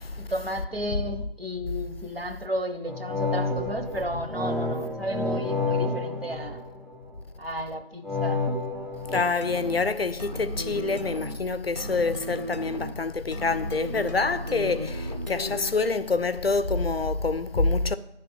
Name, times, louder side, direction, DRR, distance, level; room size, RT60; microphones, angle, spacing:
voice 1, 0.2-6.6 7.4-8.4, equal, 65° right, 0.9 m, -33 dB
sound 1, 2.9-7.2 8.0-9.2, left 3 dB, ahead, 0.5 m, -29 dB
voice 2, 9.1-18.0, left 3 dB, 65° left, 0.5 m, -26 dB
sound 2, 9.4-15.9, equal, 40° right, 0.5 m, -35 dB
9.9 x 3.4 x 5.8 m
figure-of-eight pair, 175°, 32 cm